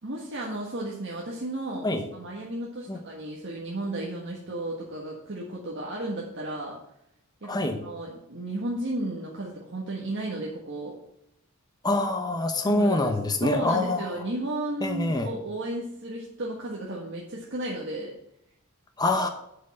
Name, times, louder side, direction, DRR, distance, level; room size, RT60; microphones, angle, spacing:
voice 1, 0.0-6.8 7.4-10.9 12.6-13.1 13.4-18.1, right 1 dB, 55° right, -3 dB, 1.5 m, -34 dB
voice 2, 7.5-7.8 11.8-14.1 14.8-15.3 19.0-19.3, left 2 dB, 20° left, 5 dB, 1.0 m, -25 dB
7.5 x 5.6 x 7.3 m, 0.77 s
head